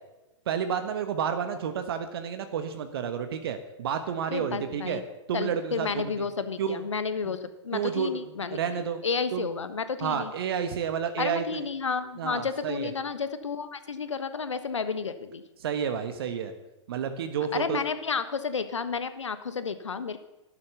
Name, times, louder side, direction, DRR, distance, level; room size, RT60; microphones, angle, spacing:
voice 1, 0.5-5.0 5.3-6.3 6.6-6.8 7.7-8.2 8.5-9.0 9.3-9.4 10.0-11.6 12.2-12.9 15.6-16.5 16.9-17.8, right 7 dB, 50° right, 8 dB, 1.3 m, -30 dB
voice 2, 4.3-5.0 5.3-10.3 11.2-15.4 17.5-20.2, left 5 dB, 70° left, 12 dB, 1.3 m, -31 dB
13.0 x 11.5 x 6.9 m, 1.0 s
figure-of-eight pair, 110°, 16 cm